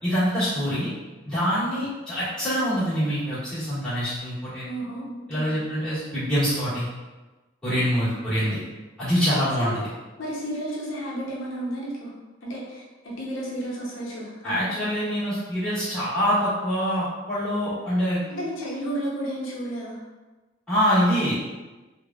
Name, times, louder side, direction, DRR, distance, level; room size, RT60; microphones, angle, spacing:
voice 1, 0.0-0.9 1.2-4.7 5.3-6.9 7.6-8.6 9.0-9.7 14.4-18.2 20.7-21.4, equal, 5° left, -15 dB, 1.5 m, -25 dB
voice 2, 4.6-5.5 8.0-8.5 9.6-9.8 10.2-12.1 12.4-14.9 18.3-20.0, right 1 dB, 90° left, -5 dB, 0.7 m, -33 dB
3.4 x 2.2 x 2.3 m, 1.2 s
head